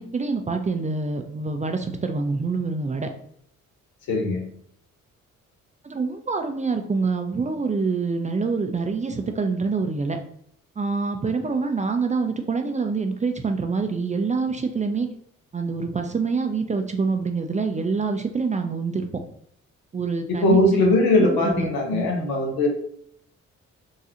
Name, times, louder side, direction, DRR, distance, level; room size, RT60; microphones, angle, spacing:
voice 1, 0.0-3.1 5.8-10.2 10.8-15.1 15.5-19.0 19.9-20.8 21.2-22.1, right 4 dB, 20° right, 5 dB, 0.4 m, -26 dB
voice 2, 4.1-4.4 20.3-22.7, left 2 dB, 75° left, 1 dB, 0.9 m, -20 dB
3.7 x 2.3 x 2.8 m, 0.66 s
hypercardioid pair, 40°, 37 cm